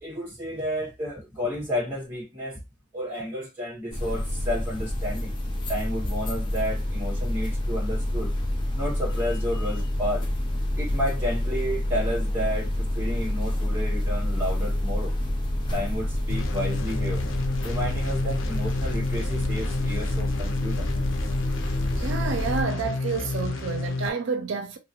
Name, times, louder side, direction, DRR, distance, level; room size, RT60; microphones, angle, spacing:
voice 1, 0.0-2.6 2.9-5.3 5.7-8.3 8.7-10.3 10.8-15.1 15.7-17.3 17.6-20.9, equal, 10° right, 1.6 m, -31 dB
sound 1, 3.9-22.6, left 1 dB, 25° left, 0.5 m, -28 dB
sound 2, 16.3-24.1, left 3 dB, 85° left, 0.5 m, -30 dB
voice 2, 22.0-24.8, right 4 dB, 70° right, 0.4 m, -29 dB
2.8 x 2.1 x 2.8 m
head